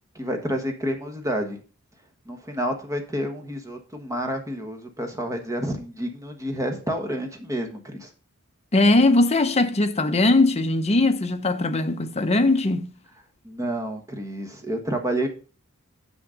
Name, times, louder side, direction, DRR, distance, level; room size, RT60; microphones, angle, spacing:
voice 1, 0.1-1.6 2.3-8.1 13.4-15.3, equal, 15° right, 1.3 m, -29 dB
voice 2, 8.7-12.9, left 2 dB, 30° left, 0.7 m, -20 dB
7.1 x 6.3 x 5.0 m
head